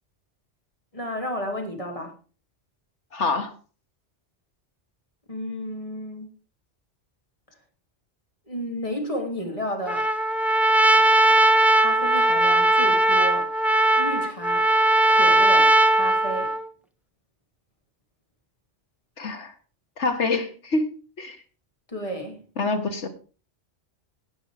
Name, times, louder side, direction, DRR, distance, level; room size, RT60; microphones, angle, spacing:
voice 1, 0.9-2.1 5.3-6.3 8.5-10.1 10.7-11.4 11.8-13.5 14.0-14.7 15.1-16.6 21.9-22.4, equal, 30° left, 2.9 m, -32 dB
voice 2, 3.1-3.5 19.2-19.5 20.0-20.9 21.2-21.4 22.6-23.1, left 3 dB, 85° left, 1.9 m, -26 dB
Trumpet, 9.9-16.7, right 1 dB, ahead, 0.5 m, -19 dB
16.5 x 6.4 x 4.9 m
omnidirectional pair, 1.2 m